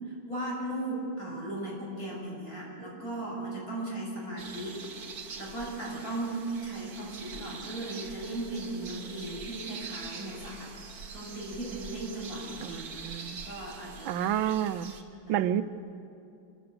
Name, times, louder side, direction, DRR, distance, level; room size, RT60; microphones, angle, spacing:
voice 1, 0.3-5.0 5.4-10.7 11.1-13.0 13.4-14.1 15.2-15.5, right 1 dB, 45° left, -4 dB, 6.9 m, -37 dB
sound 1, 4.4-15.0, right 5 dB, 50° right, 1.7 m, -44 dB
voice 2, 12.6-13.4 14.0-14.9 15.3-15.6, right 10 dB, 85° right, 12 dB, 1.5 m, -29 dB
27.5 x 14.5 x 8.0 m, 2.6 s
omnidirectional pair, 2.2 m